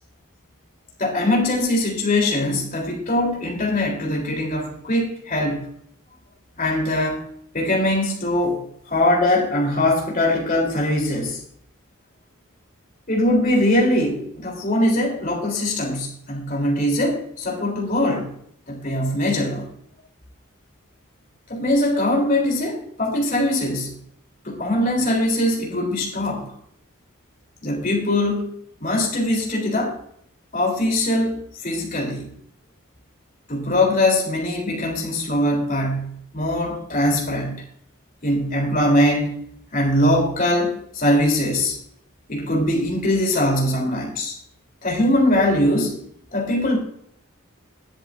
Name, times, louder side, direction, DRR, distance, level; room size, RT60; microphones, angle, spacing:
voice 1, 1.0-5.6 6.6-7.2 7.5-11.4 13.1-18.3 18.7-19.7 21.5-23.9 24.4-26.5 27.6-28.5 28.8-30.0 30.5-32.3 33.5-37.6 38.2-39.4 39.7-41.8 42.3-44.4 44.8-46.0 46.3-46.8, left 1 dB, 40° left, 0 dB, 3.4 m, -21 dB
20.5 x 8.0 x 2.6 m, 0.66 s
head